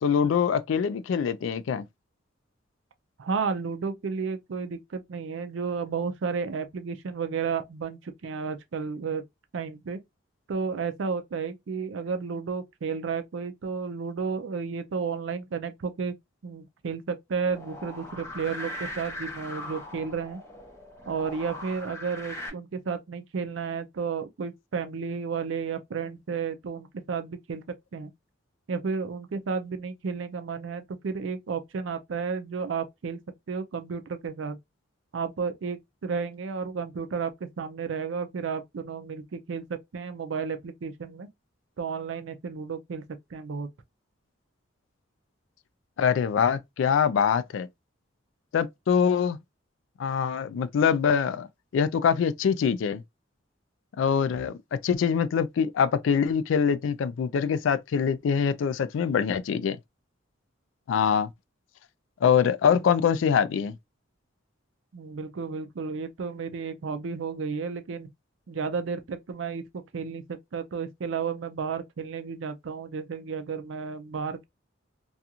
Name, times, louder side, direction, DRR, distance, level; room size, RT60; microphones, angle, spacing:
voice 1, 0.0-1.8 46.0-47.7 48.5-49.4 50.0-51.5 51.7-53.0 54.0-54.5 54.8-59.8 60.9-61.3 62.2-63.8, left 7 dB, 75° left, 0.3 m, -24 dB
voice 2, 3.2-9.2 9.5-10.0 10.5-16.2 16.4-20.4 21.1-27.6 27.9-28.1 28.7-33.2 33.5-34.6 35.1-41.3 41.8-43.0 43.3-43.7 64.9-68.1 68.5-74.5, right 5 dB, 70° right, 0.4 m, -32 dB
sound 1, 17.5-22.5, left 1 dB, 15° left, 0.8 m, -40 dB
2.4 x 2.3 x 2.7 m
head